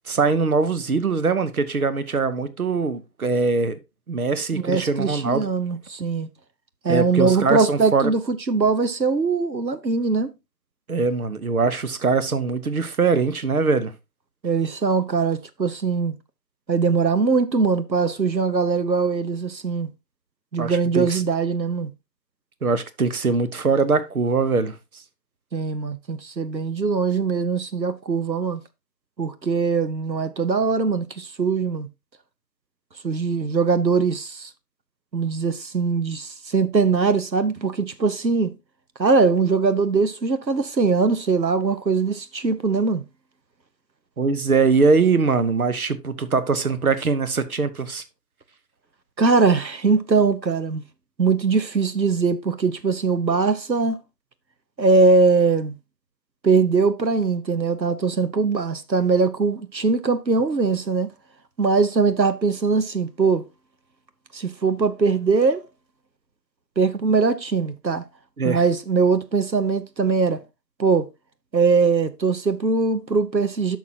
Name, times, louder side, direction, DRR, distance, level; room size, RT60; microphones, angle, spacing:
voice 1, 0.1-3.8 4.1-5.5 6.9-8.1 10.9-13.9 20.6-21.2 22.6-24.8 44.2-48.0 68.4-68.6, right 4 dB, 60° right, 1.0 m, -22 dB
voice 2, 4.5-6.3 6.8-10.3 14.4-16.1 16.7-19.9 20.5-21.9 25.5-28.6 29.2-31.9 33.0-34.5 35.1-38.6 39.0-43.0 49.2-50.8 51.2-54.0 54.8-55.8 56.4-61.1 61.6-63.5 64.3-65.6 66.8-68.0 68.4-70.4 70.8-71.1 71.5-73.8, right 4 dB, 90° right, 1.1 m, -21 dB
10.5 x 6.2 x 2.8 m
figure-of-eight pair, 155°, 50 cm